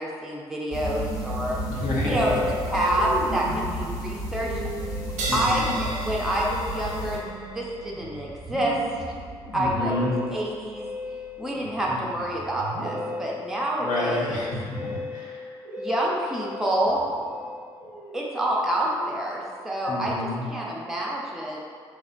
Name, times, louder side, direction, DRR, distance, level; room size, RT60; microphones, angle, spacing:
voice 1, 0.0-1.6 2.0-4.6 5.3-7.2 7.5-8.8 9.5-9.9 10.3-10.9 11.4-14.5 15.8-17.0 18.1-20.2 20.5-21.6, right 1 dB, 5° right, -4 dB, 0.5 m, -27 dB
sound 1, 0.7-7.2, equal, 25° left, 0.8 m, -32 dB
Musical instrument, 1.7-19.3, left 2 dB, 85° left, 1.1 m, -37 dB
voice 2, 1.8-2.2 5.3-5.7 9.5-10.2 11.9-12.0 13.8-15.4 19.9-20.5, left 2 dB, 65° left, -5 dB, 0.7 m, -29 dB
sound 2, 5.2-12.2, right 3 dB, 60° right, 0.4 m, -38 dB
3.1 x 2.0 x 2.5 m, 2.1 s
hypercardioid pair, 45°, 14 cm